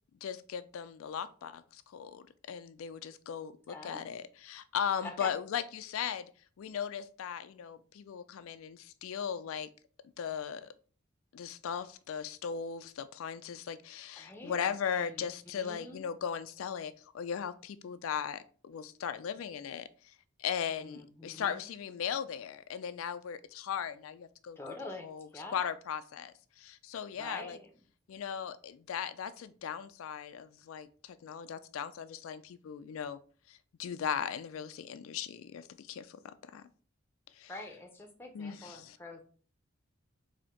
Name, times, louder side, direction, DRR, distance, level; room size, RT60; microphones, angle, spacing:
voice 1, 0.2-6.3 6.6-9.7 10.2-10.7 11.3-19.9 20.4-24.6 25.0-25.3 25.5-27.6 28.1-33.2 33.5-36.2 36.5-36.6 37.4-37.5 38.3-39.0, left 7 dB, 85° left, 0.4 m, -38 dB
voice 2, 3.7-4.1 5.0-5.3 14.2-14.7 15.0-15.3 15.5-16.0 20.8-21.7 24.6-25.6 27.1-27.7 37.5-39.2, left 2 dB, 10° left, 0.7 m, -45 dB
4.2 x 2.7 x 4.3 m
head